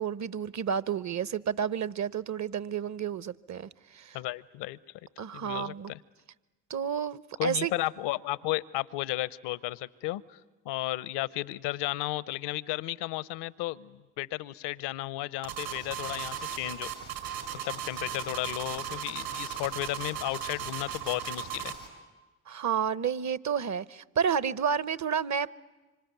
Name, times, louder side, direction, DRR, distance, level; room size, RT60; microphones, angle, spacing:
voice 1, 0.0-4.2 5.2-5.9 6.7-7.7 22.5-25.5, right 7 dB, 40° right, 0.9 m, -30 dB
voice 2, 4.1-4.8 5.3-6.0 7.4-10.4 10.6-16.9 17.5-21.7, left 17 dB, 70° left, 0.9 m, -34 dB
sound 1, 15.4-21.9, right 9 dB, 70° right, 5.8 m, -37 dB
25.5 x 25.0 x 9.3 m
hypercardioid pair, 45°, 42 cm